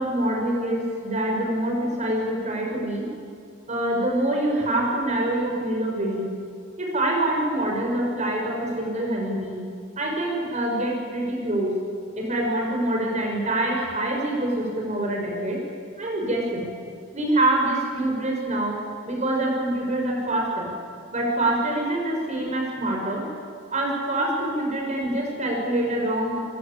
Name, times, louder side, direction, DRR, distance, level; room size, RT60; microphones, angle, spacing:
voice 1, 0.0-3.1 3.7-6.4 6.8-9.6 10.0-11.8 12.2-15.6 16.0-16.7 17.1-18.8 19.1-20.7 21.1-23.3 23.7-26.4, right 1 dB, 35° right, 0 dB, 6.2 m, -25 dB
29.5 x 20.0 x 9.0 m, 2.3 s
head